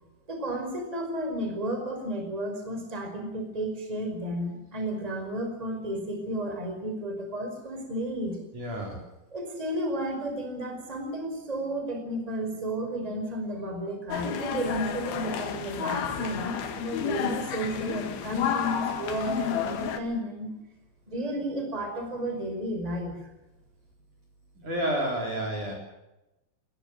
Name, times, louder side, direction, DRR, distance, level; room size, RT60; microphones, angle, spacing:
voice 1, 0.3-8.4 9.3-20.5 21.1-23.2, right 1 dB, 5° right, 4 dB, 4.6 m, -32 dB
voice 2, 8.5-9.0 24.6-25.7, right 1 dB, 40° right, 0 dB, 4.9 m, -30 dB
sound 1, 14.1-20.0, left 8 dB, 60° left, 3.0 m, -31 dB
21.0 x 18.5 x 8.0 m, 0.94 s
omnidirectional pair, 6.0 m